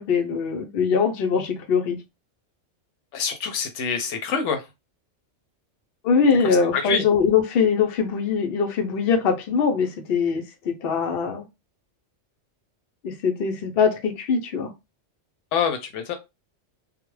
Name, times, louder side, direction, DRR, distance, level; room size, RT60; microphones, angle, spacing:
voice 1, 0.0-2.0 6.0-11.4 13.0-14.7, left 6 dB, 60° left, 0.8 m, -22 dB
voice 2, 3.1-4.6 6.7-7.0 15.5-16.2, left 6 dB, 85° left, 0.9 m, -25 dB
2.3 x 2.1 x 3.0 m
omnidirectional pair, 1.2 m